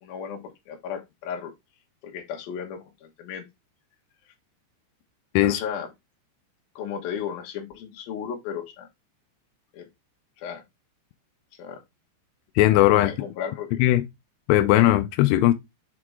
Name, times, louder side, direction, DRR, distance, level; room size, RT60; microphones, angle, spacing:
voice 1, 0.0-1.5 2.0-3.4 5.4-5.9 6.8-8.9 9.7-9.9 10.4-10.6 11.6-11.8 13.0-13.8, left 8 dB, 65° left, 2.7 m, -35 dB
voice 2, 12.6-13.1 13.8-14.0 14.5-15.5, left 15 dB, 85° left, 2.3 m, -18 dB
6.7 x 4.8 x 3.6 m
omnidirectional pair, 5.3 m